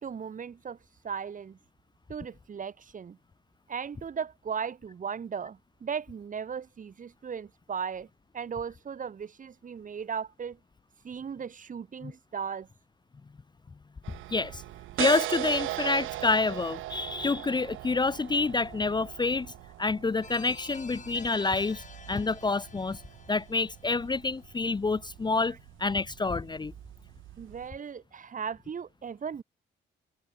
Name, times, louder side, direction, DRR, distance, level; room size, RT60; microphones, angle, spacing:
voice 1, 0.0-0.8 1.0-1.6 2.1-3.2 3.7-8.1 8.3-10.6 11.0-12.7 27.4-29.4, right 7 dB, 40° right, 1.5 m, -37 dB
sound 1, 14.0-27.7, right 16 dB, 85° right, 0.7 m, -39 dB
voice 2, 14.3-14.6 15.0-19.5 19.8-23.0 23.3-26.7, left 3 dB, 20° left, 0.7 m, -28 dB
sound 2, 20.2-25.0, left 5 dB, 40° left, 3.7 m, -51 dB
cardioid pair, 90°, 20 cm